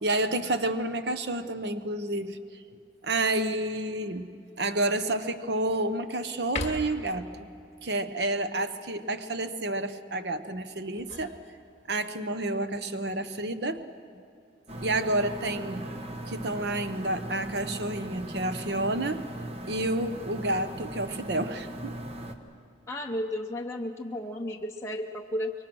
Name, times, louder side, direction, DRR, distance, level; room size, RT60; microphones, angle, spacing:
voice 1, 0.0-2.6 3.0-4.3 4.6-7.3 7.8-11.4 11.9-13.8 14.8-15.9 16.3-19.3 19.7-21.9, right 2 dB, 60° right, 11 dB, 0.9 m, -30 dB
sound 1, 3.4-3.9 4.5-4.6 5.1-5.9 6.4-7.2 10.7-12.0 13.4-13.9, left 2 dB, 35° left, 2.0 m, -40 dB
sound 2, 14.7-22.3, right 1 dB, 30° right, 1.2 m, -39 dB
voice 2, 22.9-25.5, left 1 dB, 15° left, 0 dB, 0.8 m, -33 dB
25.0 x 23.0 x 6.2 m, 2.5 s
head